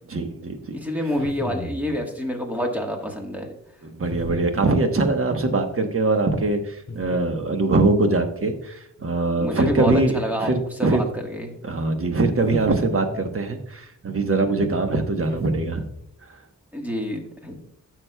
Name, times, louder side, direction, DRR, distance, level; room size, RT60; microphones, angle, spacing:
voice 1, 0.1-0.8 3.8-11.0 11.6-15.8, right 3 dB, 45° right, 5 dB, 1.1 m, -22 dB
voice 2, 0.7-3.6 9.4-10.5 10.8-11.5 16.7-17.7, equal, 5° right, 1 dB, 1.4 m, -28 dB
sound 1, 1.1-1.9 4.1-4.7 6.9-7.7 9.8-10.6 12.4-13.4 15.3-16.0, left 2 dB, 40° left, 2.7 m, -35 dB
13.5 x 6.3 x 2.2 m, 0.73 s
wide cardioid pair, 170°, 32 cm